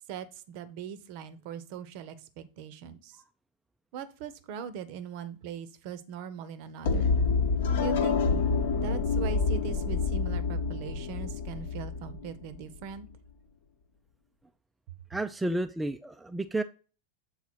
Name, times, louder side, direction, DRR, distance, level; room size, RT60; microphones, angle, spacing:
voice 1, 0.1-3.1 3.9-7.2 7.8-8.2 8.7-13.1, right 7 dB, 45° right, 13 dB, 0.7 m, -41 dB
sound 1, 6.8-12.8, left 4 dB, 55° left, 0.9 m, -27 dB
voice 2, 15.1-16.6, right 2 dB, 5° right, 7 dB, 0.3 m, -31 dB
7.1 x 4.0 x 4.3 m, 0.36 s
figure-of-eight pair, 90°, 0 cm